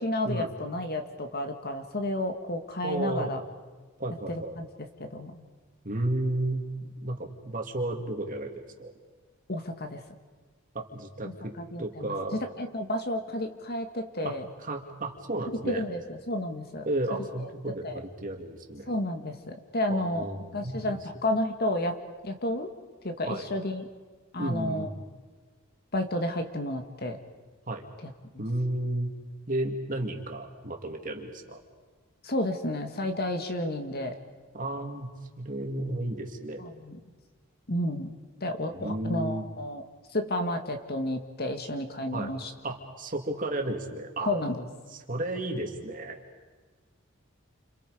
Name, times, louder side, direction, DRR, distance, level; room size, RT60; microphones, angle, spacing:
voice 1, 0.0-3.4 4.3-4.7 5.0-5.4 9.5-10.0 11.7-14.5 15.7-16.9 17.8-18.0 18.9-20.2 20.5-22.0 22.2-22.7 23.0-23.8 24.3-24.9 25.9-27.2 28.0-28.4 32.2-34.2 36.6-37.0 37.7-39.8 40.1-42.5 44.3-44.7, left 1 dB, 50° left, 6 dB, 2.0 m, -31 dB
voice 2, 2.8-3.3 4.0-4.6 5.8-8.9 10.7-12.4 14.2-14.3 14.6-15.8 16.8-18.9 19.9-21.0 23.2-23.5 24.4-25.0 27.7-27.8 28.4-29.1 29.5-31.6 34.5-35.1 35.4-36.6 38.7-39.5 42.1-42.3 42.6-44.3 44.9-46.2, right 1 dB, 40° right, 3 dB, 2.6 m, -33 dB
29.5 x 27.5 x 5.1 m, 1.4 s
head